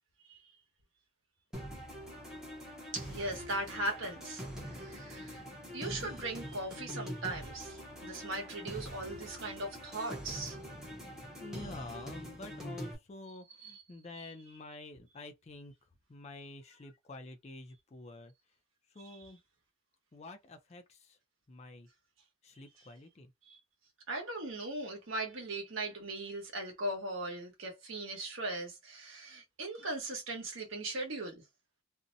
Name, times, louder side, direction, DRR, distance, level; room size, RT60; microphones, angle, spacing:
sound 1, 1.5-12.9, equal, 5° right, 0.7 m, -44 dB
voice 1, 2.9-5.4 5.7-10.6 13.6-13.8 19.0-19.2 23.5-23.6 24.1-31.4, right 2 dB, 65° right, 1.0 m, -39 dB
voice 2, 11.4-15.7 16.1-18.3 18.9-19.4 20.1-21.2 21.5-21.9 22.4-23.3, left 2 dB, 30° left, 0.4 m, -49 dB
2.6 x 2.0 x 2.6 m
head